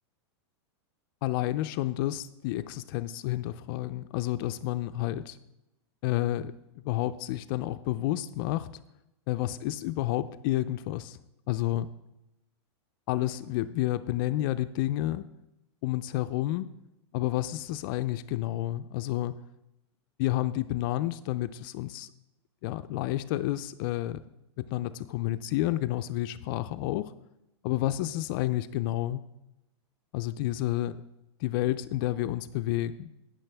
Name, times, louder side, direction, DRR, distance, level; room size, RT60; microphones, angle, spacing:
voice 1, 1.2-5.4 6.0-8.7 9.3-11.2 11.5-11.9 13.1-15.3 15.8-16.7 17.1-19.4 20.2-22.1 22.6-24.2 24.6-27.1 27.6-29.2 30.1-31.0 31.4-33.1, left 15 dB, 50° left, 11 dB, 0.4 m, -30 dB
16.5 x 6.3 x 3.4 m, 0.91 s
supercardioid pair, 135°, 15 cm